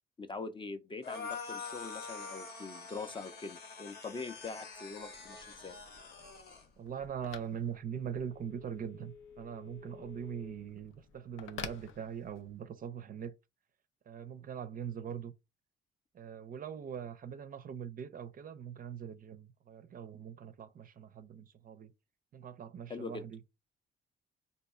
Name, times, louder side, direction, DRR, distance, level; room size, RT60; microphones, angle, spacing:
voice 1, 0.2-5.8 22.9-23.2, left 4 dB, 25° left, 0.4 m, -43 dB
sound 1, 1.0-6.6, left 4 dB, 55° left, 0.9 m, -45 dB
Telephone, 4.8-12.7, left 7 dB, 85° left, 0.5 m, -51 dB
voice 2, 6.8-13.3 14.1-15.3 16.1-21.9 22.3-23.4, right 8 dB, 45° right, 0.4 m, -42 dB
2.7 x 2.2 x 4.0 m
cardioid pair, 90°, 20 cm